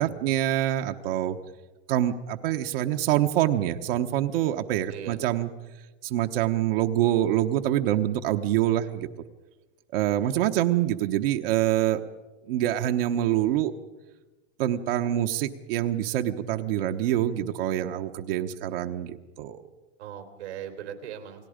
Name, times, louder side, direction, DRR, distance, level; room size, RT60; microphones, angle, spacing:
voice 1, 0.0-1.4 1.9-5.5 6.0-9.1 9.9-12.0 12.5-13.7 14.6-19.6, right 12 dB, 60° right, 5 dB, 1.1 m, -25 dB
voice 2, 10.2-10.6 20.0-21.5, right 9 dB, 90° right, 6 dB, 3.6 m, -40 dB
29.0 x 19.5 x 5.1 m, 1.2 s
supercardioid pair, 150°, 32 cm